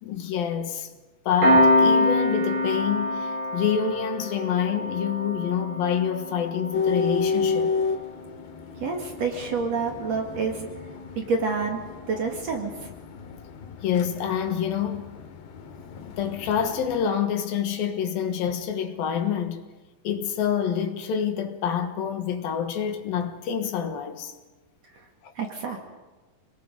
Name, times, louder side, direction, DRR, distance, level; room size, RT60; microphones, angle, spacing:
voice 1, 0.0-0.9 1.3-7.7 13.8-15.2 16.2-19.6 20.0-24.3 25.2-25.3, left 8 dB, 65° left, 3.0 m, -27 dB
Piano, 1.4-12.5, left 1 dB, 75° right, 8.2 m, -27 dB
sound 1, 6.7-17.1, left 5 dB, 85° left, 3.8 m, -32 dB
voice 2, 8.8-10.7 11.2-11.8 12.1-12.9 24.9-25.1 25.4-25.8, right 4 dB, 50° right, 2.6 m, -28 dB
27.5 x 20.5 x 5.3 m
omnidirectional pair, 4.8 m